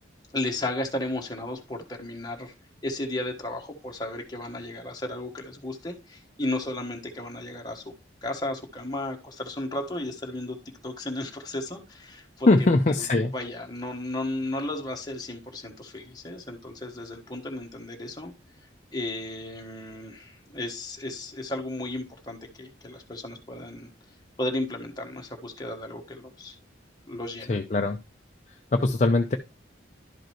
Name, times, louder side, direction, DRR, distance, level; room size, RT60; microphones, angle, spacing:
voice 1, 0.3-2.5 2.8-7.8 8.2-10.6 10.8-13.0 13.3-18.3 18.9-23.9 24.4-26.5 27.1-27.5, left 1 dB, 20° left, 1 dB, 1.3 m, -34 dB
voice 2, 12.5-13.3 27.5-28.0 28.5-29.4, left 2 dB, 40° left, 5 dB, 0.5 m, -22 dB
11.5 x 5.2 x 3.0 m, 0.27 s
head